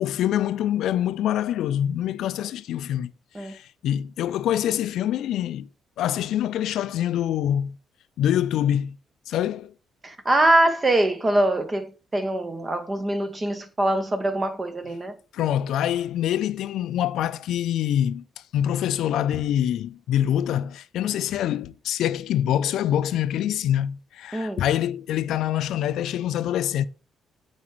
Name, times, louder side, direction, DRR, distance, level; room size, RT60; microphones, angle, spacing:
voice 1, 0.0-3.1 3.4-5.7 6.0-7.8 8.2-9.0 9.3-9.7 15.3-18.2 18.5-26.9, left 11 dB, 80° left, 0.4 m, -25 dB
voice 2, 10.0-15.1 24.3-24.6, right 1 dB, 25° right, 0.7 m, -23 dB
8.5 x 4.4 x 3.1 m
cardioid pair, 90°, 0 cm